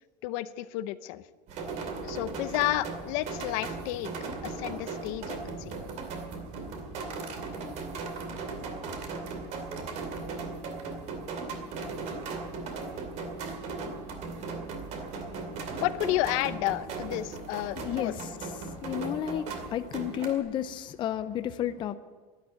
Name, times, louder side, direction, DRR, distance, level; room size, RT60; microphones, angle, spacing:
voice 1, 0.2-1.2 2.0-4.1 4.4-5.7 15.8-18.1, left 15 dB, 80° left, 13 dB, 0.8 m, -31 dB
sound 1, 1.5-20.4, right 4 dB, 45° right, 2.5 m, -37 dB
voice 2, 17.8-21.9, left 10 dB, 30° left, 11 dB, 0.6 m, -32 dB
12.5 x 12.5 x 9.1 m, 1.4 s
cardioid pair, 180°, 17 cm